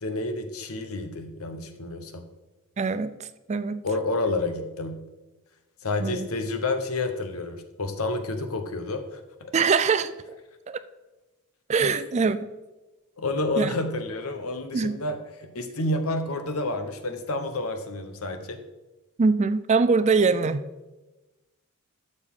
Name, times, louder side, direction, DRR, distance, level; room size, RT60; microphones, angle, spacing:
voice 1, 0.0-2.2 3.8-5.0 5.8-9.5 11.9-12.0 13.2-18.6, left 2 dB, 75° left, 8 dB, 1.0 m, -29 dB
voice 2, 2.8-3.8 6.0-6.3 9.5-10.1 10.7-10.8 11.7-12.4 13.6-13.7 14.7-14.9 19.2-20.6, right 4 dB, 30° right, 13 dB, 0.4 m, -23 dB
12.0 x 6.7 x 3.7 m, 1.1 s
head